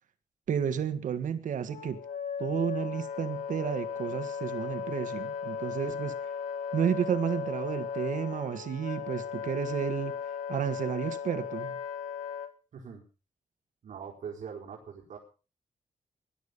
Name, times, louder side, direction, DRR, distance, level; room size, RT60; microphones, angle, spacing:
voice 1, 0.5-2.0 2.4-6.3 6.7-11.8, right 8 dB, 90° right, 9 dB, 1.6 m, -32 dB
Wind instrument woodwind instrument, 1.7-12.5, left 7 dB, 85° left, 1.7 m, -36 dB
voice 2, 12.7-13.0 13.8-15.2, right 7 dB, 70° right, -1 dB, 4.8 m, -42 dB
20.5 x 11.5 x 5.4 m, 0.36 s
wide cardioid pair, 145°, 13 cm